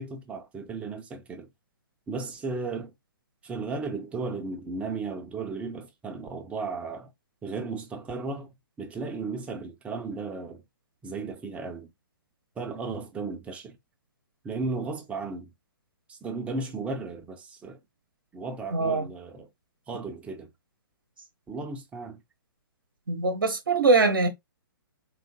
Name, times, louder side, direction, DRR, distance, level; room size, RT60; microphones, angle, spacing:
voice 1, 0.0-1.5 2.1-2.9 3.4-7.1 7.4-10.6 11.0-11.9 12.6-13.8 14.4-15.5 16.1-17.8 18.3-19.5 19.9-20.5 21.5-22.2, right 3 dB, 10° right, 0.8 m, -35 dB
voice 2, 18.7-19.1 23.1-24.3, right 3 dB, 60° right, 1.0 m, -22 dB
3.9 x 3.5 x 2.9 m
figure-of-eight pair, 125°, 12 cm